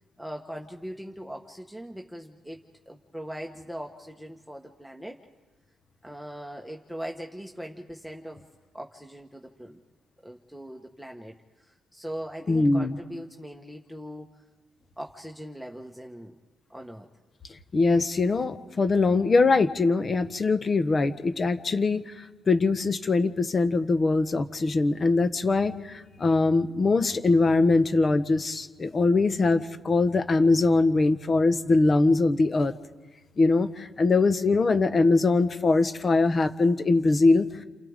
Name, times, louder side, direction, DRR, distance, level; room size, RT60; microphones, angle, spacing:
voice 1, 0.2-2.6 2.9-5.2 6.0-8.4 8.7-9.8 10.2-14.4 15.0-16.4 16.7-17.1, equal, ahead, 1 dB, 1.4 m, -40 dB
voice 2, 12.5-13.0 17.7-32.7 33.4-37.6, left 3 dB, 35° left, 9 dB, 1.3 m, -22 dB
29.5 x 27.5 x 3.7 m, 1.2 s
cardioid pair, 90°, 0 cm